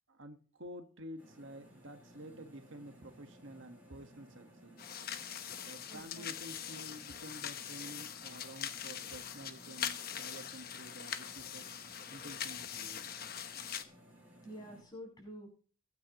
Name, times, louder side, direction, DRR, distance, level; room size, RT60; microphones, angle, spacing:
voice 1, 0.1-4.8 5.6-11.7 12.1-13.0, equal, 65° right, 6 dB, 1.5 m, -50 dB
sound 1, 1.2-14.8, right 1 dB, 5° right, 7.3 m, -59 dB
sound 2, 4.8-13.8, left 9 dB, 45° left, 1.1 m, -42 dB
voice 2, 5.9-6.3 14.4-15.5, equal, 20° left, 0 dB, 7.0 m, -48 dB
23.5 x 9.7 x 3.0 m, 0.39 s
head